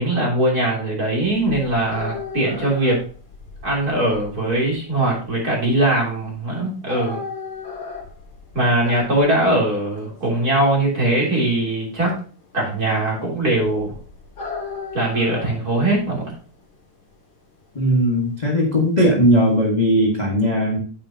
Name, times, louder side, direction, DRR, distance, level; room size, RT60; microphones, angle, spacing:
voice 1, 0.0-3.0 3.6-7.2 8.5-12.1 12.5-13.9 14.9-16.3, right 1 dB, 30° right, -2 dB, 3.5 m, -21 dB
sound 1, 1.2-19.7, left 4 dB, 40° left, 3.6 m, -37 dB
voice 2, 17.7-20.8, equal, 25° left, -2 dB, 1.0 m, -18 dB
9.0 x 8.6 x 2.8 m, 0.39 s
omnidirectional pair, 3.3 m